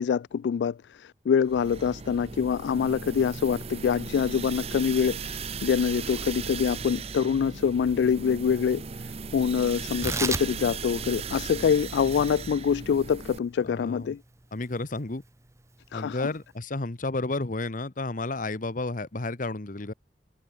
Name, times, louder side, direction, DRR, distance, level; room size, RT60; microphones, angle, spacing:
voice 1, 0.0-8.8 9.3-14.2 15.9-16.3, left 7 dB, 80° left, 0.3 m, -25 dB
sound 1, 1.4-13.4, right 5 dB, 35° right, 0.7 m, -37 dB
Tearing, 9.8-16.6, right 3 dB, 15° right, 1.3 m, -38 dB
voice 2, 13.6-14.1 14.5-15.2 15.9-19.9, left 2 dB, 50° left, 1.2 m, -32 dB
head